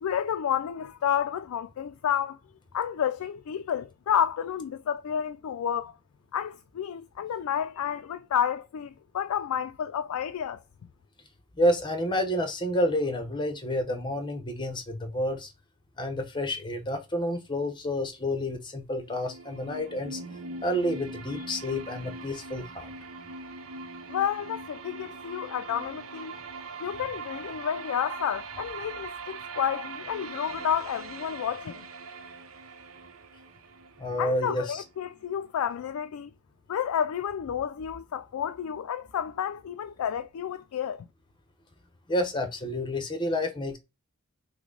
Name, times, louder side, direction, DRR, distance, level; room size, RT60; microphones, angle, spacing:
voice 1, 0.0-2.4 2.7-6.0 6.3-10.6 24.1-26.3 26.8-31.9 34.2-36.3 36.7-41.1, left 8 dB, 90° left, 0.3 m, -30 dB
voice 2, 11.6-15.5 16.0-20.2 20.6-22.9 34.0-34.8 42.1-43.8, left 1 dB, 20° left, 0.8 m, -29 dB
sound 1, 18.9-34.9, right 4 dB, 70° right, 0.7 m, -41 dB
5.8 x 2.1 x 3.9 m
head